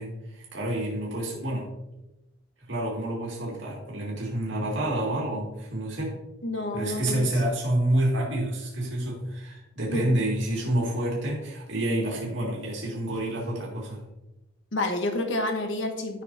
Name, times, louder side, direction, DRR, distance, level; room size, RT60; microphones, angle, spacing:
voice 1, 0.0-1.7 2.7-6.2 6.7-14.0, right 1 dB, 80° right, -4 dB, 2.1 m, -28 dB
voice 2, 6.4-7.3 9.9-10.1 14.7-16.2, left 2 dB, 80° left, 5 dB, 1.1 m, -29 dB
10.5 x 6.0 x 2.7 m, 0.95 s
head